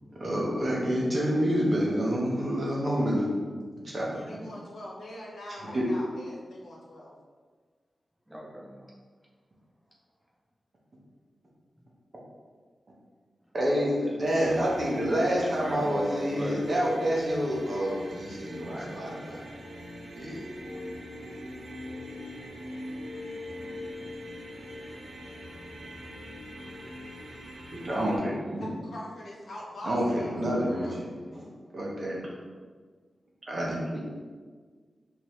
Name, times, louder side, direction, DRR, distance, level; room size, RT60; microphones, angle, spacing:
voice 1, 0.2-3.3 3.8-4.5 5.7-5.8 13.5-19.4 20.2-20.4 27.8-28.7 29.8-31.5 31.7-32.2 33.5-34.1, equal, 35° right, -4 dB, 1.0 m, -28 dB
voice 2, 4.0-7.1 28.6-31.1, left 1 dB, 80° left, -4 dB, 1.0 m, -43 dB
voice 3, 8.3-8.9 13.9-14.0 15.4-16.7 18.7-19.0 28.1-28.6, equal, 5° right, -4 dB, 0.8 m, -39 dB
sound 1, 14.2-28.2, left 1 dB, 70° right, 0.9 m, -42 dB
5.2 x 2.8 x 3.2 m, 1.5 s
wide cardioid pair, 150°, 0 cm